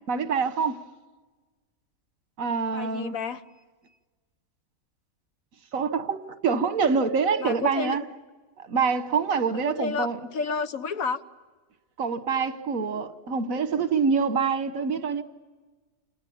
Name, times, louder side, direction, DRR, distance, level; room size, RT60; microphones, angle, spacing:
voice 1, 0.1-0.8 2.4-3.2 5.7-8.0 8.6-10.2 12.0-15.2, right 5 dB, 75° right, 1.6 m, -26 dB
voice 2, 2.7-3.4 7.4-8.0 9.5-11.2, left 5 dB, 85° left, 1.5 m, -30 dB
28.5 x 28.5 x 7.2 m
omnidirectional pair, 1.4 m